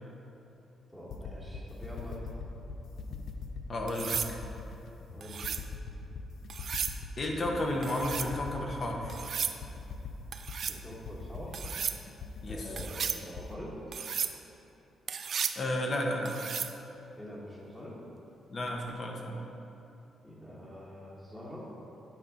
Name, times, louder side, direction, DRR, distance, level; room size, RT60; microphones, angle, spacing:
voice 1, 0.9-2.2 5.1-5.5 10.7-11.6 12.5-13.8 17.1-18.0 20.2-21.7, equal, 10° left, -9 dB, 1.3 m, -45 dB
sound 1, 1.1-13.5, left 5 dB, 65° left, 0.6 m, -42 dB
voice 2, 3.7-4.4 7.2-9.2 12.4-12.7 15.5-16.4 18.5-19.4, left 1 dB, 45° left, 1 dB, 1.0 m, -32 dB
sound 2, 3.9-4.3 5.2-5.7 6.5-7.0 7.8-8.3 9.1-9.6 10.3-10.8 11.5-12.0 12.8-13.2 13.9-14.3 15.1-15.6 16.2-16.7 18.7-18.9, right 7 dB, 60° right, 0.3 m, -34 dB
8.8 x 4.1 x 5.0 m, 3.0 s
cardioid pair, 85°, 0 cm